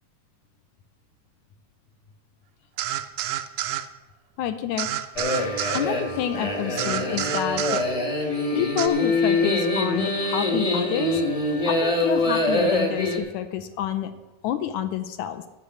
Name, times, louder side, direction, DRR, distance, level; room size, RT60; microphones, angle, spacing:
sound 1, 2.8-3.9 4.8-5.9 6.8-7.9 8.8-8.9, right 13 dB, 85° right, 1.5 m, -28 dB
voice 1, 4.4-5.0 5.7-7.8 8.5-11.2 11.7-14.1 14.4-15.4, left 11 dB, 75° left, 10 dB, 2.0 m, -28 dB
sound 2, 5.2-13.2, left 2 dB, 40° left, 0.5 m, -24 dB
12.5 x 5.4 x 8.6 m, 1.1 s
omnidirectional pair, 3.8 m